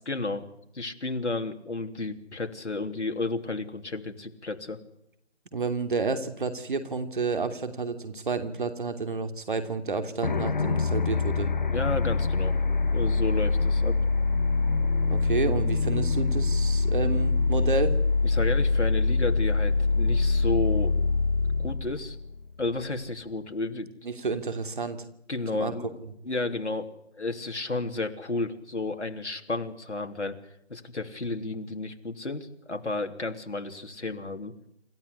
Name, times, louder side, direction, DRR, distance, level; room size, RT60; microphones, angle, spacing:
voice 1, 0.1-0.4 0.7-4.8 11.7-12.6 12.9-13.9 18.2-20.9 21.6-22.1 22.6-23.9 25.3-25.9 26.2-26.9 27.2-30.4 30.7-34.5, left 3 dB, 90° left, 4 dB, 3.4 m, -32 dB
voice 2, 5.5-11.5 15.1-17.9 24.0-25.0 25.5-25.7, right 4 dB, 45° right, 9 dB, 2.9 m, -30 dB
sound 1, 10.2-22.9, left 3 dB, 45° left, 1.2 m, -25 dB
26.5 x 14.0 x 9.9 m, 0.78 s
figure-of-eight pair, 165°, 34 cm